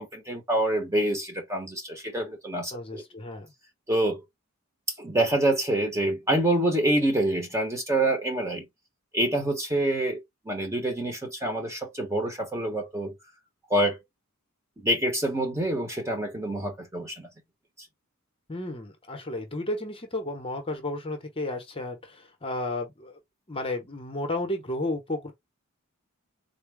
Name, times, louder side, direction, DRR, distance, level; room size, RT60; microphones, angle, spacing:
voice 1, 0.0-3.0 3.9-4.2 5.0-8.7 9.1-10.2 10.5-13.1 13.7-14.0 14.8-17.3, right 1 dB, 15° right, 1.0 m, -26 dB
voice 2, 2.7-3.5 18.5-23.2 23.5-25.3, left 2 dB, 25° left, 0.8 m, -33 dB
3.9 x 2.2 x 3.4 m
head